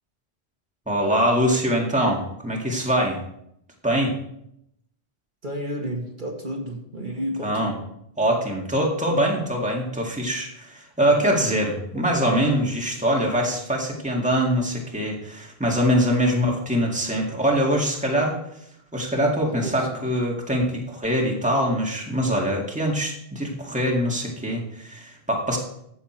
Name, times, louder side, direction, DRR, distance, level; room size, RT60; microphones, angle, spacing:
voice 1, 0.9-3.2 3.8-4.2 7.4-7.7 8.2-18.4 18.9-25.6, equal, 5° right, -1 dB, 2.0 m, -23 dB
voice 2, 5.4-7.8 11.1-11.5 11.9-12.4 19.4-20.1, equal, 50° right, -1 dB, 2.1 m, -32 dB
14.5 x 7.1 x 4.4 m, 0.75 s
omnidirectional pair, 1.1 m